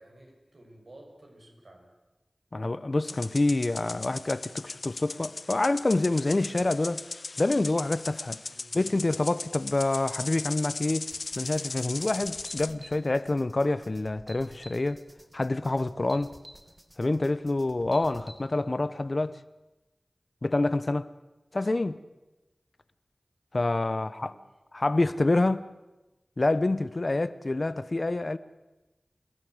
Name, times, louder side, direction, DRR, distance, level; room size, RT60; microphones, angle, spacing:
voice 1, 0.0-1.9 8.4-8.7 23.9-24.5, right 1 dB, 70° right, 6.8 m, -53 dB
voice 2, 2.5-7.0 7.4-8.4 8.7-11.1 11.4-15.0 15.3-16.4 17.0-19.4 20.4-21.1 21.5-22.0 23.5-24.3 24.7-25.7 26.4-28.4, left 2 dB, 50° left, 0.9 m, -27 dB
sound 1, 3.0-12.7, left 3 dB, 75° left, 0.8 m, -38 dB
sound 2, 11.1-18.4, equal, 15° right, 4.2 m, -51 dB
29.0 x 17.0 x 8.0 m
wide cardioid pair, 50°, 0 cm